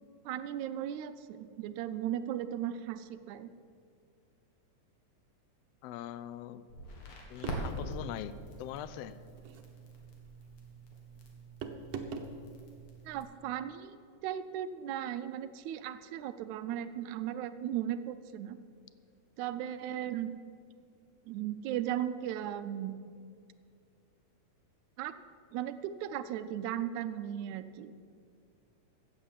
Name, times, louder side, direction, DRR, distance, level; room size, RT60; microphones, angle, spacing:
voice 1, 0.2-3.5 13.0-18.6 19.4-20.4 21.3-23.0 25.0-25.2 25.5-27.9, right 11 dB, 85° right, 12 dB, 2.0 m, -37 dB
voice 2, 5.8-6.6 7.3-8.3 8.6-9.2, left 12 dB, 85° left, 14 dB, 1.4 m, -42 dB
Crackle, 6.7-13.2, equal, 60° left, 2.9 m, -44 dB
sound 1, 7.4-8.0 9.4-9.7 11.6-12.4, right 5 dB, 70° right, 1.9 m, -41 dB
14.5 x 8.7 x 7.3 m, 2.3 s
omnidirectional pair, 3.3 m